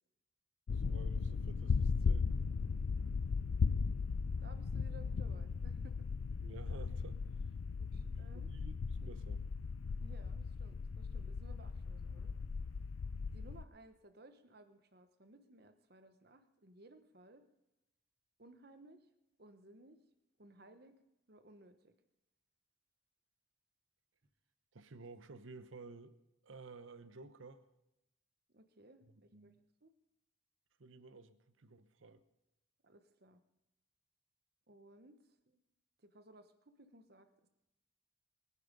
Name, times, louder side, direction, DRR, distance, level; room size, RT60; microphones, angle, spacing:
sound 1, 0.7-13.6, left 5 dB, 90° left, 0.4 m, -37 dB
voice 1, 0.7-2.3 6.4-7.2 7.9-9.4 24.7-26.2 26.4-27.7 29.1-29.6 30.8-32.2, right 3 dB, 75° right, 13 dB, 0.9 m, -54 dB
voice 2, 4.4-6.0 7.8-8.5 10.0-12.3 13.3-17.4 18.4-19.0 19.4-20.0 20.4-20.9 21.3-21.9 28.5-29.5 29.8-29.9 32.8-33.4 34.7-35.1 35.5-35.6 36.0-37.5, right 2 dB, 50° right, 9 dB, 1.1 m, -60 dB
22.0 x 10.0 x 5.3 m, 0.92 s
head